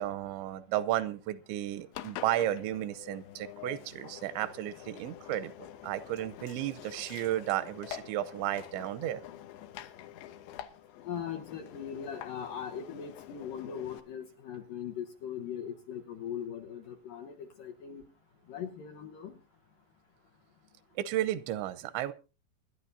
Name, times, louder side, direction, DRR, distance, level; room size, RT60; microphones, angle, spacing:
voice 1, 0.0-9.2 21.0-22.1, right 13 dB, 85° right, 14 dB, 3.1 m, -33 dB
Engine, 1.9-14.0, left 12 dB, 85° left, 3.2 m, -47 dB
voice 2, 11.0-18.0 18.5-19.3, left 8 dB, 70° left, 5 dB, 2.2 m, -40 dB
25.5 x 11.0 x 2.7 m, 0.32 s
omnidirectional pair, 5.1 m